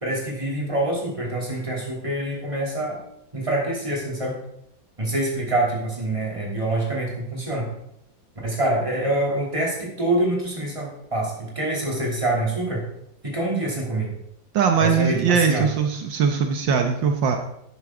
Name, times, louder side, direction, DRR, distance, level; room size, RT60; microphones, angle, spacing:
voice 1, 0.0-3.0 3.3-4.3 5.0-7.7 8.4-12.9 13.2-14.1 14.8-15.7, right 1 dB, 15° right, -3 dB, 3.0 m, -25 dB
voice 2, 14.5-17.4, right 6 dB, 75° right, 4 dB, 1.6 m, -21 dB
12.0 x 9.4 x 3.8 m, 0.76 s
omnidirectional pair, 2.0 m